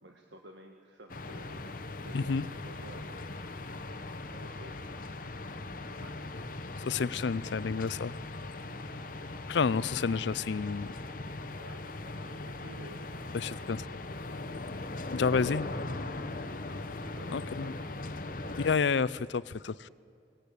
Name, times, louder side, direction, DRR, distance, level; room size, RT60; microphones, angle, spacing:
voice 1, 0.0-1.7 2.0-3.2 4.3-4.8 6.0-6.2 11.5-13.0 13.4-13.6 15.5-15.7 16.3-16.6 17.1-17.9 18.2-18.6, right 2 dB, 75° right, 3 dB, 1.4 m, -52 dB
sound 1, 1.1-18.8, left 2 dB, 45° left, 0.9 m, -40 dB
voice 2, 2.1-2.5 6.8-8.1 9.5-10.9 13.3-13.8 15.1-15.7 17.3-17.7 18.6-19.9, left 5 dB, 75° left, 19 dB, 0.5 m, -30 dB
19.0 x 17.5 x 8.4 m, 2.4 s
head